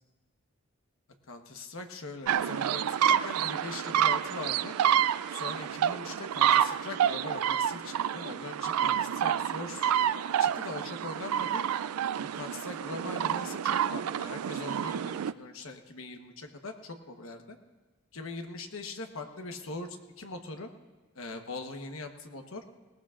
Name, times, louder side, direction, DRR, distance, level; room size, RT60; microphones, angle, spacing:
voice 1, 1.3-4.8 5.3-9.9 10.4-11.6 12.1-17.6 18.1-20.7 21.1-22.6, left 2 dB, 70° left, 5 dB, 1.2 m, -41 dB
sound 1, 2.3-15.3, right 9 dB, 85° right, 0.3 m, -28 dB
19.5 x 18.5 x 2.5 m, 1.3 s
head